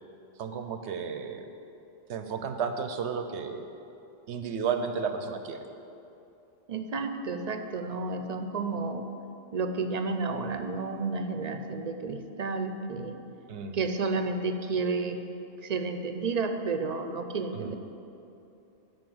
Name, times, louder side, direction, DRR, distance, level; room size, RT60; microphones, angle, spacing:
voice 1, 0.4-1.5 2.1-3.6 4.3-5.6 13.5-13.8 17.5-17.7, right 6 dB, 90° right, 7 dB, 1.0 m, -33 dB
voice 2, 6.7-9.1 9.5-13.2 13.7-15.2 15.6-17.8, right 4 dB, 45° right, 7 dB, 0.6 m, -31 dB
9.0 x 5.5 x 7.8 m, 2.8 s
omnidirectional pair, 1.1 m